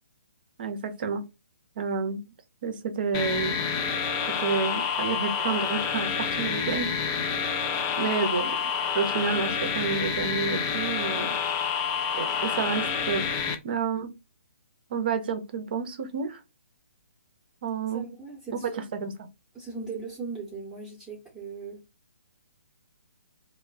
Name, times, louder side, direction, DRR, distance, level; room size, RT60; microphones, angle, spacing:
voice 1, 0.6-1.2 1.8-2.2 2.6-3.6 4.4-6.9 8.0-8.5 8.9-11.3 12.2-13.2 13.6-14.1 14.9-16.4 17.6-18.1 18.9-19.1, right 5 dB, 45° right, 0.5 m, -29 dB
sound 1, 3.1-13.6, left 7 dB, 20° left, 0.3 m, -28 dB
voice 2, 17.9-18.7 19.5-21.8, right 4 dB, 5° right, 0.7 m, -38 dB
2.2 x 2.1 x 3.5 m
figure-of-eight pair, 130°, 7 cm